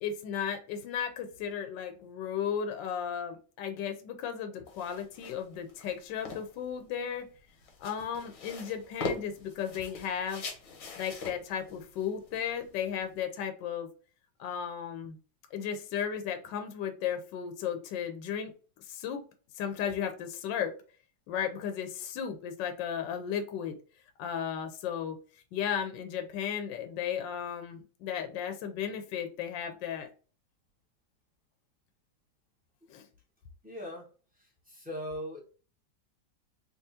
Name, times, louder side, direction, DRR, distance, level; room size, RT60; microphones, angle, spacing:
voice 1, 0.0-7.3 7.8-10.4 11.0-13.9 14.4-15.2 15.5-18.5 18.8-19.2 19.5-20.8 21.3-23.8 24.2-25.2 25.5-30.1 32.9-33.1, left 8 dB, 80° left, 6 dB, 1.2 m, -35 dB
sound 1, 4.7-13.2, left 3 dB, 55° left, 1.1 m, -42 dB
voice 2, 33.6-34.1 34.3-35.4, equal, 5° right, -2 dB, 1.0 m, -40 dB
3.5 x 2.9 x 2.7 m, 0.38 s
omnidirectional pair, 2.0 m